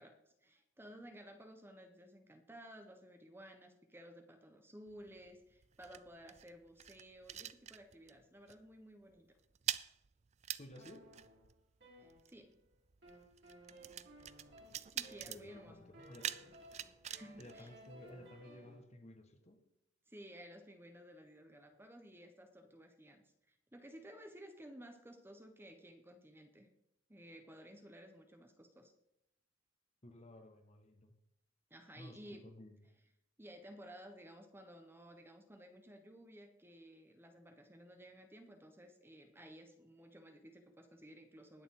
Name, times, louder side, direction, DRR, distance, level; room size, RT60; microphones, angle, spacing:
voice 1, 0.0-9.4 12.0-12.6 14.9-15.9 17.1-17.7 20.1-26.7 27.1-28.9 31.7-32.5 33.4-41.6, equal, 10° right, 5 dB, 1.1 m, -55 dB
sound 1, 4.9-8.2 8.5-8.8 9.0-18.4, right 10 dB, 35° right, 0.4 m, -46 dB
voice 2, 10.6-11.1 15.2-16.3 17.4-19.6 30.0-31.1 31.9-32.8, left 1 dB, 35° left, 6 dB, 1.6 m, -55 dB
sound 2, 10.7-12.6 13.0-18.8, right 1 dB, 65° right, 5.0 m, -59 dB
20.5 x 7.0 x 3.8 m, 0.84 s
head